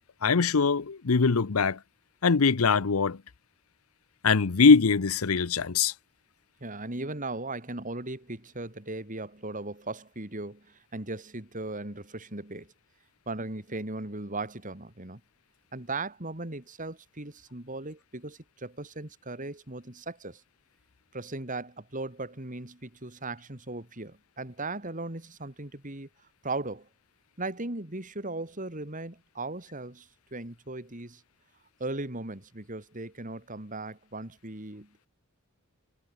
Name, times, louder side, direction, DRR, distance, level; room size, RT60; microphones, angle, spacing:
voice 1, 0.2-1.8 2.2-3.2 4.2-5.9, left 5 dB, 85° left, 0.8 m, -22 dB
voice 2, 6.6-12.7 13.3-15.2 15.7-20.4 21.1-26.1 26.4-26.9 27.4-31.2 31.8-35.1, right 2 dB, 40° right, 3.2 m, -37 dB
head